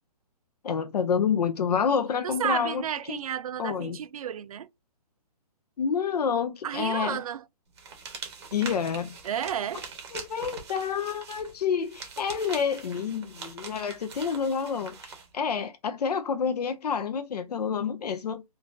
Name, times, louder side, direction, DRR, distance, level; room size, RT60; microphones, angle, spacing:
voice 1, 0.6-2.8 3.1-3.2 3.6-4.0 5.8-7.2 8.5-9.2 10.1-18.4, left 6 dB, 90° left, 0.5 m, -28 dB
voice 2, 2.2-4.7 6.6-7.4 9.2-9.9, right 9 dB, 65° right, 0.4 m, -32 dB
sound 1, 7.8-15.3, right 5 dB, 45° right, 1.0 m, -43 dB
3.6 x 2.4 x 2.5 m
hypercardioid pair, 170°, 20 cm